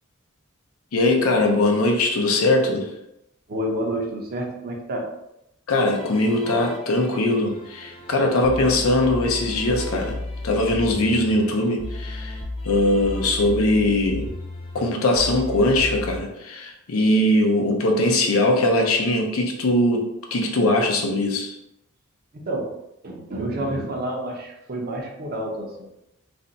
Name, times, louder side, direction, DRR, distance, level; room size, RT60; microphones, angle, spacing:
voice 1, 0.9-2.9 5.7-10.2 10.4-12.4 12.6-14.3 14.7-21.5, left 1 dB, 80° left, 2 dB, 0.6 m, -21 dB
voice 2, 3.5-5.1 8.2-8.3 22.3-22.7 23.0-25.9, right 1 dB, 45° right, 1 dB, 0.6 m, -29 dB
sound 1, 5.9-16.2, left 2 dB, 25° left, 0.5 m, -34 dB
2.5 x 2.2 x 3.9 m, 0.84 s
head